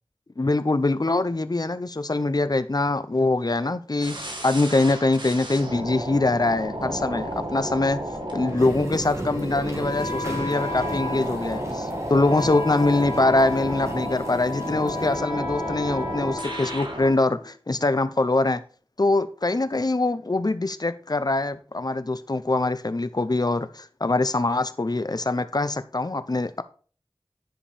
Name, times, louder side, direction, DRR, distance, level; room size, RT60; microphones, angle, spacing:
voice 1, 0.4-8.0 8.3-18.6 19.0-26.6, left 2 dB, 45° left, 0.6 m, -23 dB
sound 1, 4.0-17.1, right 1 dB, 55° right, 2.0 m, -32 dB
sound 2, 8.5-15.2, right 1 dB, 30° right, 2.4 m, -39 dB
Wind instrument woodwind instrument, 9.8-17.5, left 3 dB, 70° left, 1.5 m, -35 dB
10.0 x 5.3 x 4.2 m
wide cardioid pair, 50°, 9 cm